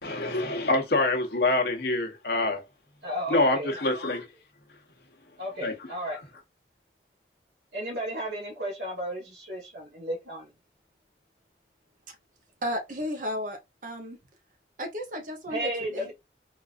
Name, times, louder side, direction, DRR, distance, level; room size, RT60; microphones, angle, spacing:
voice 1, 0.0-2.6 3.3-4.3 5.6-5.9, left 2 dB, 65° left, 0.9 m, -26 dB
voice 2, 3.0-3.7 5.4-6.2 7.7-10.5 15.5-16.1, right 1 dB, 85° right, 1.1 m, -33 dB
voice 3, 12.6-14.2 14.8-16.1, equal, 45° right, 0.7 m, -34 dB
3.8 x 2.4 x 2.5 m
head